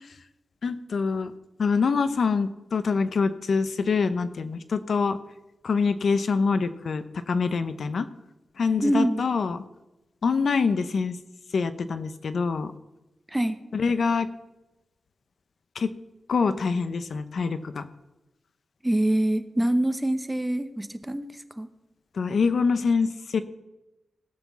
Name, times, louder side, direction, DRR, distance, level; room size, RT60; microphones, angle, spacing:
voice 1, 0.6-1.3 1.6-5.2 5.6-8.1 8.6-9.6 10.2-11.2 11.5-12.7 13.7-14.3 15.7-15.9 16.3-17.9 22.1-23.4, left 5 dB, 60° left, 11 dB, 0.7 m, -25 dB
voice 2, 8.8-9.2 13.3-13.6 18.8-21.2 21.6-21.7, right 1 dB, 10° right, 10 dB, 0.7 m, -25 dB
17.0 x 6.0 x 7.3 m, 0.99 s
wide cardioid pair, 145°, 0 cm